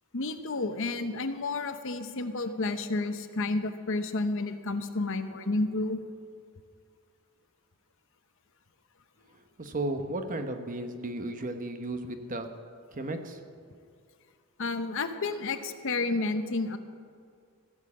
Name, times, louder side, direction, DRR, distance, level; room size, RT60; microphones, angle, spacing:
voice 1, 0.1-6.0 14.6-16.8, left 3 dB, 60° left, 9 dB, 0.9 m, -31 dB
voice 2, 9.3-12.5 12.9-13.4 13.8-13.9, right 2 dB, 40° right, 7 dB, 1.0 m, -34 dB
15.5 x 7.3 x 8.6 m, 2.3 s
head